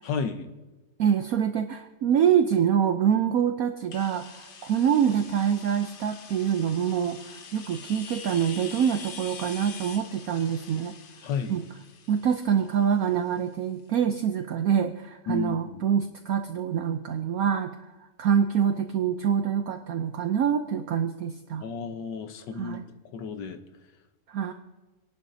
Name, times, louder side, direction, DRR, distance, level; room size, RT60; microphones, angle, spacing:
voice 1, 0.0-0.5 11.2-11.6 15.3-15.9 21.6-22.8 23.1-23.6, left 5 dB, 85° left, 7 dB, 1.6 m, -32 dB
voice 2, 1.0-10.9 11.5-11.6 12.1-17.7 18.2-21.6 22.6-22.8 24.3-24.5, right 8 dB, 65° right, 7 dB, 1.0 m, -25 dB
sound 1, 3.9-13.5, left 6 dB, 50° left, 0.6 m, -45 dB
28.0 x 11.5 x 2.7 m, 1.2 s
omnidirectional pair, 1.9 m